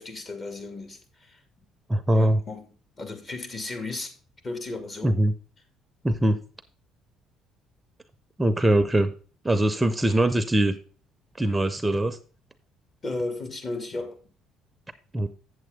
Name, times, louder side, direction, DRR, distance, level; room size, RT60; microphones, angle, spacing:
voice 1, 0.0-1.4 2.1-2.7 3.0-4.1 4.4-5.2 13.0-14.2, left 2 dB, 40° left, 2.4 m, -34 dB
voice 2, 1.9-2.4 5.0-5.3 6.0-6.4 8.4-9.1 9.4-10.7 11.4-12.2 15.1-15.3, right 1 dB, 15° right, 0.7 m, -22 dB
8.2 x 7.7 x 3.7 m
supercardioid pair, 75°, 0 cm